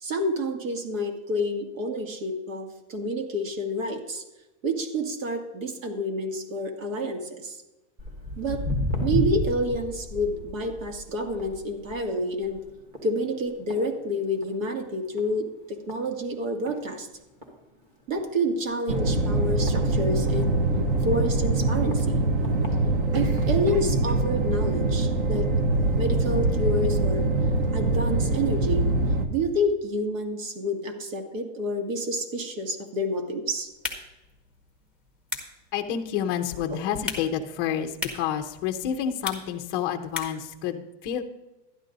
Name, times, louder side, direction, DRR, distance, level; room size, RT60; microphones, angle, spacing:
voice 1, 0.0-4.2 4.6-7.6 8.4-8.6 9.0-12.6 13.0-17.1 18.1-20.5 21.0-22.2 23.1-25.5 26.0-27.3 27.7-28.9 29.3-33.7, equal, 85° right, 4 dB, 2.3 m, -29 dB
Walk footsteps, 8.0-14.7 15.0-15.3 15.9-16.0 16.7-16.8 17.1-17.2 17.4-17.5 18.1-18.3 18.9-20.5 21.1-21.2 21.9-22.0 22.4-22.7 23.4-23.5, left 1 dB, 20° right, 1.8 m, -32 dB
sound 1, 18.9-29.3, right 2 dB, 45° right, 1.0 m, -24 dB
sound 2, 33.7-40.5, left 4 dB, 5° right, 0.8 m, -39 dB
voice 2, 35.7-41.2, left 9 dB, 20° left, 5 dB, 0.5 m, -29 dB
12.0 x 10.5 x 3.9 m, 1.0 s
supercardioid pair, 175°, 38 cm